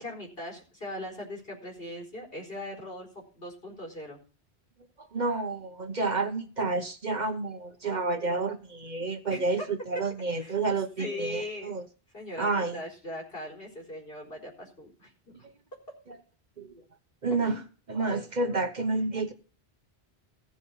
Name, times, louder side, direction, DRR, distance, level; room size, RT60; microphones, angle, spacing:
voice 1, 0.0-4.2 9.3-9.7 10.4-10.6 11.0-11.7 12.1-15.5 17.4-17.6, left 1 dB, 65° left, 4.5 m, -40 dB
voice 2, 5.1-11.8 12.4-12.8 16.6-16.7 17.2-17.6 17.9-19.3, right 3 dB, 45° right, 1.0 m, -29 dB
15.5 x 7.0 x 5.4 m
omnidirectional pair, 1.1 m